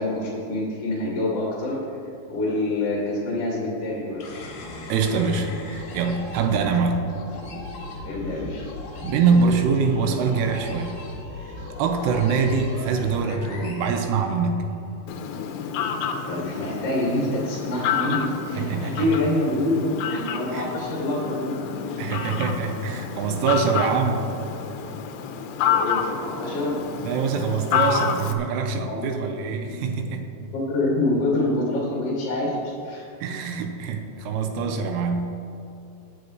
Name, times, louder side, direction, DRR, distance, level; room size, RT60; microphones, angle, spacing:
voice 1, 0.0-1.8 2.3-4.2 8.0-8.7 16.0-21.6 21.9-22.1 25.6-26.8 28.8-29.1 29.6-29.8 30.5-33.1, left 1 dB, 45° left, -5 dB, 2.2 m, -26 dB
sound 1, 4.2-14.8, left 3 dB, 60° left, 2.7 m, -38 dB
voice 2, 4.9-7.1 9.0-10.9 11.4-14.7 18.6-19.1 20.5-20.7 22.0-24.3 27.0-30.2 33.2-35.4, right 5 dB, 85° right, 4 dB, 3.4 m, -24 dB
Fowl, 15.1-28.3, left 7 dB, 80° left, 2.6 m, -29 dB
21.0 x 9.0 x 3.1 m, 2.7 s
omnidirectional pair, 5.6 m